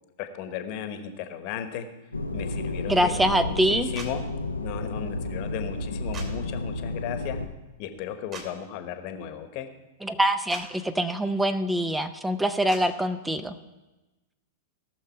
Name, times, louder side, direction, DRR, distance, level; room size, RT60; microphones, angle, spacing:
voice 1, 0.2-1.9 2.3-4.2 4.6-7.4 7.8-9.7, left 9 dB, 45° left, 8 dB, 1.2 m, -35 dB
sound 1, 2.1-7.5, left 2 dB, 90° left, 0.8 m, -32 dB
voice 2, 2.9-3.9 10.0-13.5, right 1 dB, 5° right, 11 dB, 0.7 m, -24 dB
sound 2, 3.9-4.1 6.1-6.3 8.3-8.5 10.5-10.6 12.7-12.8, right 5 dB, 35° right, 2.9 m, -39 dB
18.0 x 6.5 x 4.6 m, 1.1 s
figure-of-eight pair, 95°, 0 cm